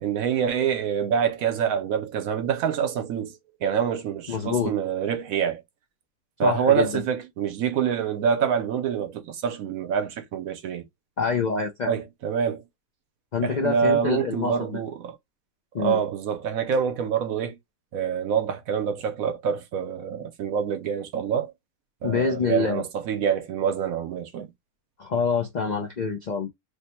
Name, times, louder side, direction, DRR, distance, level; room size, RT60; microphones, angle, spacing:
voice 1, 0.0-5.6 6.4-10.8 11.9-12.7 13.4-15.2 15.8-17.6 17.9-21.5 22.0-24.5, right 7 dB, 75° right, 1.1 m, -26 dB
voice 2, 4.3-4.7 6.4-7.0 11.2-11.9 13.3-14.8 15.7-16.0 22.0-22.8 25.0-26.5, left 5 dB, 70° left, 0.4 m, -26 dB
3.2 x 2.1 x 4.2 m
omnidirectional pair, 1.6 m